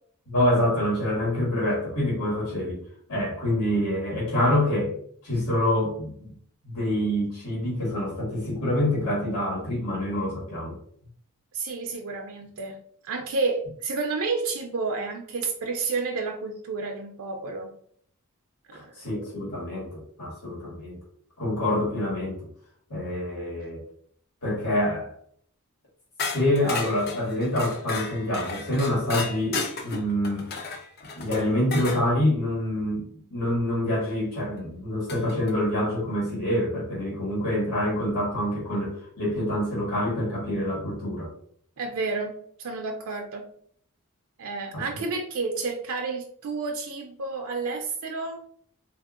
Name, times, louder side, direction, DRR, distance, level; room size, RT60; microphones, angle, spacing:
voice 1, 0.3-2.8 3.1-4.9 5.2-6.3 6.6-10.8 18.7-21.0 21.4-22.4 22.9-23.8 24.4-25.1 26.3-30.5 31.1-41.3 44.7-44.8, left 1 dB, 85° left, -6 dB, 1.5 m, -26 dB
voice 2, 11.5-12.8 13.0-17.7 18.7-18.9 41.8-43.4 44.4-48.4, right 4 dB, 65° right, 3 dB, 0.4 m, -30 dB
sound 1, 26.2-32.0 34.0-34.1 35.1-35.5, left 4 dB, 45° left, 0.5 m, -33 dB
3.6 x 2.6 x 2.4 m, 0.62 s
head